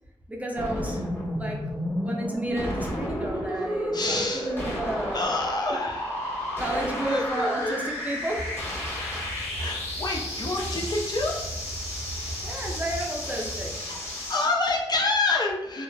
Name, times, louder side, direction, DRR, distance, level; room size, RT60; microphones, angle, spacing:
voice 1, 0.3-1.0 1.4-1.6 2.0-5.3 6.6-8.5 12.4-13.8, right 1 dB, 15° right, -1 dB, 0.5 m, -32 dB
sound 1, 0.6-14.5, left 1 dB, 20° left, 1.2 m, -32 dB
voice 2, 3.9-4.5 5.1-6.4 7.1-7.8 9.0-9.3 9.5-11.4 14.3-15.8, left 3 dB, 45° left, -1 dB, 0.5 m, -28 dB
sound 2, 8.3-13.8, right 2 dB, 85° right, 0.7 m, -38 dB
2.9 x 2.0 x 2.2 m, 0.96 s
cardioid pair, 60°, 10 cm